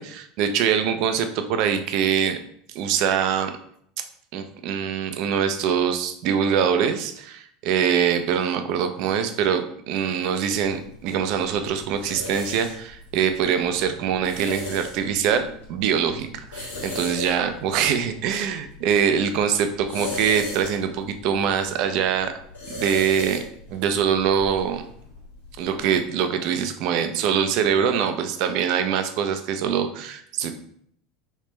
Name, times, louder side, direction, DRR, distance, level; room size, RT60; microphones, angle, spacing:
voice 1, 0.0-2.4 2.7-3.5 4.3-22.3 22.7-23.4 23.7-24.8 25.6-30.6, right 7 dB, 60° right, 8 dB, 0.4 m, -23 dB
sound 1, 10.5-26.0, left 2 dB, 90° left, 1.2 m, -38 dB
3.3 x 3.2 x 3.0 m, 0.66 s
hypercardioid pair, 80°, 0 cm